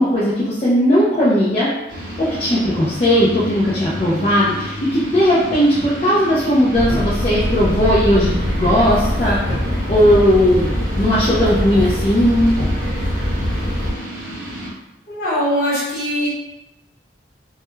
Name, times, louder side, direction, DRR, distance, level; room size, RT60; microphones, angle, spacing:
voice 1, 0.0-1.7 2.2-9.4 9.9-12.5, equal, 35° left, -8 dB, 0.4 m, -17 dB
sound 1, 1.9-14.7, equal, 90° right, 0.7 m, -32 dB
sound 2, 6.7-13.9, equal, 20° right, 0.9 m, -22 dB
voice 2, 15.1-16.3, equal, 50° left, -8 dB, 1.1 m, -21 dB
2.2 x 2.1 x 3.0 m, 0.96 s
head